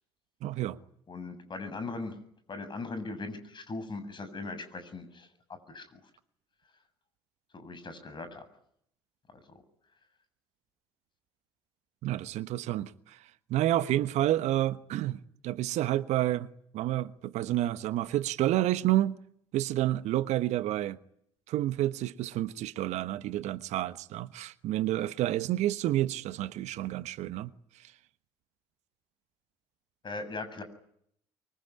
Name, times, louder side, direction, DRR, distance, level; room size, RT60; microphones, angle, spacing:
voice 1, 0.4-0.8 12.0-13.2 13.5-16.5 16.7-19.2 19.5-21.0 21.5-27.5 27.8-27.9, right 14 dB, 60° right, 1.2 m, -29 dB
voice 2, 1.1-2.2 2.5-6.0 7.5-8.5 9.3-9.6 30.0-30.6, left 3 dB, 35° left, 7.4 m, -39 dB
25.0 x 24.0 x 10.0 m
hypercardioid pair, 50°, 13 cm